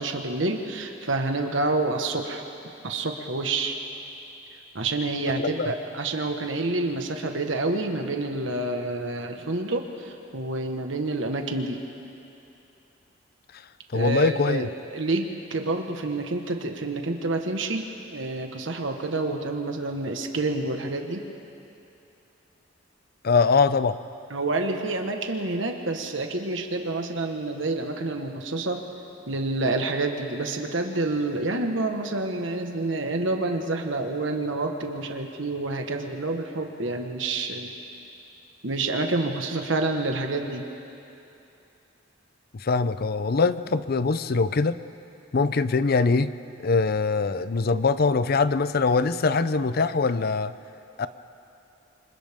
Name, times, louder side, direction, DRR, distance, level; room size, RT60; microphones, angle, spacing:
voice 1, 0.0-2.4 2.8-3.8 4.7-11.8 13.9-17.8 18.1-21.3 24.3-28.8 29.3-37.7 38.6-40.6, right 2 dB, 75° right, 4 dB, 1.4 m, -28 dB
voice 2, 5.4-5.7 13.9-14.7 23.2-24.0 42.5-44.8 45.3-46.3 46.6-50.5 51.0-51.1, left 4 dB, 50° left, 13 dB, 0.6 m, -23 dB
28.5 x 25.5 x 3.7 m, 2.8 s
head